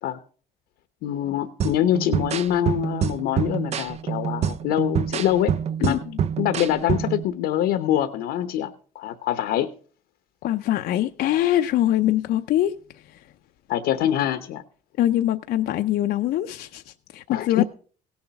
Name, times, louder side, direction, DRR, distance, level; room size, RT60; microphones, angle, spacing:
voice 1, 1.0-5.5 5.8-6.0 6.4-9.7 13.7-14.6 17.3-17.6, left 11 dB, 85° left, 1.0 m, -24 dB
sound 1, 1.6-7.2, right 8 dB, 40° right, 0.5 m, -26 dB
voice 2, 10.4-12.7 15.0-17.6, left 13 dB, 65° left, 0.6 m, -23 dB
17.0 x 7.2 x 5.9 m
cardioid pair, 110°, 17 cm